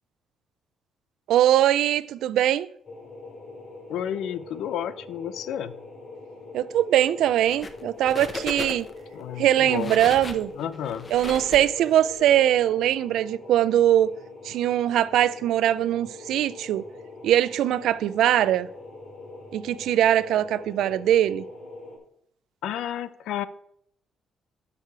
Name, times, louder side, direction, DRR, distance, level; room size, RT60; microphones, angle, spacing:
voice 1, 1.3-2.7 6.5-8.9 9.4-10.5 11.1-14.1 14.4-16.8 17.2-18.7 19.5-21.4, right 11 dB, 80° right, 0.4 m, -21 dB
sound 1, 2.8-22.0, left 3 dB, 55° left, 2.8 m, -43 dB
voice 2, 3.9-5.8 9.1-10.0 10.6-11.1 22.6-23.5, left 10 dB, 80° left, 0.5 m, -31 dB
sound 2, 7.4-9.0 9.5-12.2, left 3 dB, 30° left, 0.9 m, -36 dB
11.5 x 4.9 x 4.5 m
cardioid pair, 90°, 0 cm